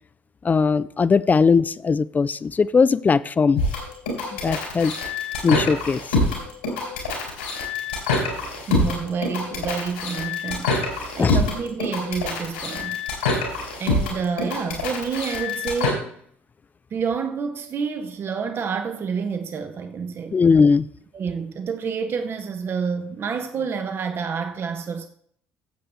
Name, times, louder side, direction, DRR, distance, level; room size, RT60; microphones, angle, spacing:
voice 1, 0.4-3.6 4.3-4.9 5.4-6.0 11.2-11.4 20.3-20.9, left 5 dB, 30° left, 0.5 m, -19 dB
sound 1, 3.6-15.9, left 3 dB, 85° left, 4.2 m, -25 dB
voice 2, 8.7-13.0 13.8-16.2 16.9-20.4 21.1-25.1, right 6 dB, 45° right, 0.9 m, -28 dB
15.0 x 7.8 x 3.4 m
hypercardioid pair, 55°, 6 cm